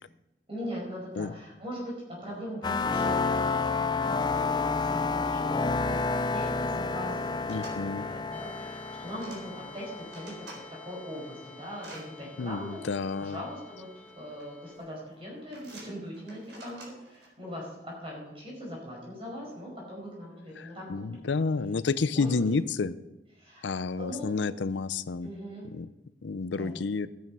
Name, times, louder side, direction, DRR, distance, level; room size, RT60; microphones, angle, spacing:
voice 1, 0.5-3.7 4.0-12.8 13.2-21.2 22.1-22.5 23.4-24.3 25.2-25.7 26.5-26.8, equal, 30° right, -3 dB, 5.3 m, -41 dB
sound 1, 2.6-11.2, left 4 dB, 25° left, 0.4 m, -30 dB
sound 2, 7.2-7.8 8.7-9.4 9.8-10.6 11.1-12.0 13.0-13.1 14.1-14.5 14.8-15.1 15.5-17.3, right 2 dB, 85° right, 4.3 m, -49 dB
voice 2, 7.5-8.1 12.4-13.4 20.6-22.9 23.6-25.3 25.7-25.9 26.2-27.1, left 4 dB, 80° left, 15 dB, 0.5 m, -30 dB
sound 3, 8.3-14.8, left 2 dB, 5° left, 1.6 m, -51 dB
13.0 x 9.3 x 5.5 m, 0.95 s
head